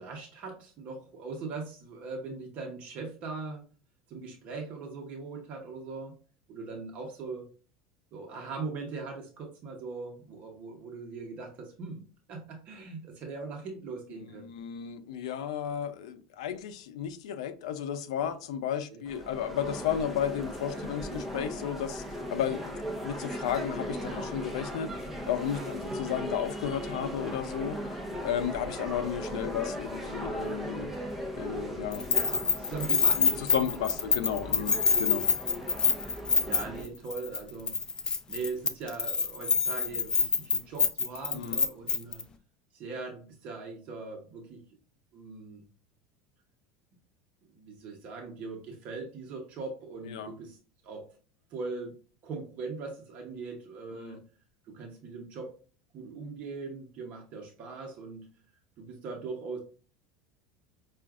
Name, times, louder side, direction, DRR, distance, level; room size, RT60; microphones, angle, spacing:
voice 1, 0.0-3.6 4.1-6.1 6.5-7.4 8.1-12.0 12.3-14.5 18.2-18.3 18.9-19.0 25.5-25.9 28.1-28.2 28.5-28.7 32.6-33.4 36.4-37.8 38.3-42.2 42.7-44.6 45.1-45.6 47.5-50.6 50.8-51.1 51.5-54.2 54.6-55.5 55.9-58.3 58.8-59.6, right 4 dB, 50° right, 0.9 m, -40 dB
voice 2, 14.2-22.0 22.3-24.9 25.3-28.0 28.2-30.9 31.4-32.1 33.2-35.2 41.3-41.6 50.1-50.3 53.9-54.2, left 9 dB, 85° left, 0.5 m, -33 dB
sound 1, 19.1-36.8, equal, 5° right, 0.8 m, -38 dB
Keys jangling, 31.9-36.9 37.1-37.4 37.7-42.2, left 5 dB, 25° left, 0.5 m, -26 dB
5.7 x 2.4 x 2.4 m
supercardioid pair, 120°, 3 cm